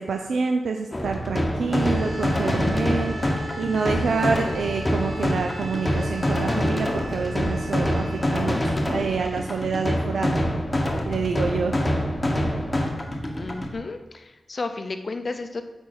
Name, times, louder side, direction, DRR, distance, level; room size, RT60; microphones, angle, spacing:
voice 1, 0.0-3.3 3.6-8.0 8.3-10.6 11.1-11.7, right 5 dB, 90° right, 4 dB, 0.5 m, -27 dB
sound 1, 0.9-13.7, equal, 15° left, 1.0 m, -25 dB
sound 2, 1.8-9.6, equal, 20° right, 3.0 m, -39 dB
voice 2, 13.4-15.6, left 3 dB, 40° left, 8 dB, 0.6 m, -32 dB
8.5 x 5.3 x 4.8 m, 1.1 s
wide cardioid pair, 160°, 0 cm